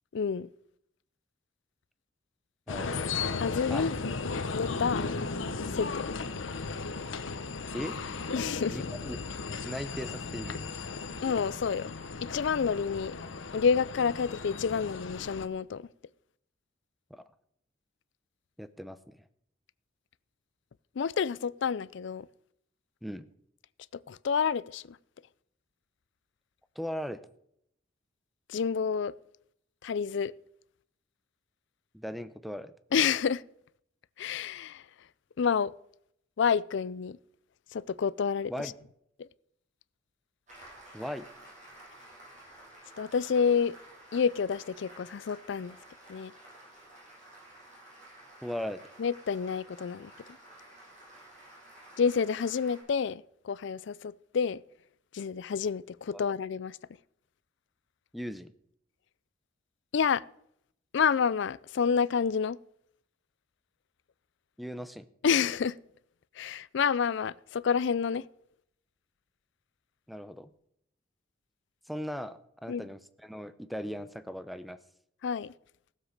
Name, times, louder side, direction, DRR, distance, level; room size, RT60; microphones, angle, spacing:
voice 1, 0.1-0.5 3.4-4.0 4.5-5.1 5.7-6.1 8.3-8.9 11.2-11.9 12.2-13.2 13.5-15.9 21.0-22.3 23.9-25.0 28.5-29.1 29.8-30.3 32.9-33.4 34.2-34.8 35.4-35.7 36.4-37.2 37.7-38.5 39.2-39.3 43.0-43.8 44.1-45.8 46.1-46.3 49.0-50.1 52.0-54.6 55.1-56.8 59.9-60.2 60.9-62.6 65.2-65.8 66.4-68.3 72.7-72.8 75.2-75.5, left 6 dB, 65° left, 0.4 m, -29 dB
sound 1, 2.7-15.5, left 4 dB, 80° left, 0.9 m, -36 dB
voice 2, 2.7-3.1 3.7-3.9 7.7-8.0 8.7-9.2 9.6-10.6 17.1-17.2 18.6-19.2 23.0-23.3 26.8-27.2 31.9-32.7 38.5-38.7 40.9-41.3 48.4-48.8 56.1-56.2 58.1-58.5 64.6-65.1 70.1-70.5 71.9-74.8, equal, ahead, 0.6 m, -38 dB
Applause, 40.5-52.8, right 1 dB, 40° right, 7.3 m, -52 dB
16.0 x 7.5 x 6.5 m
head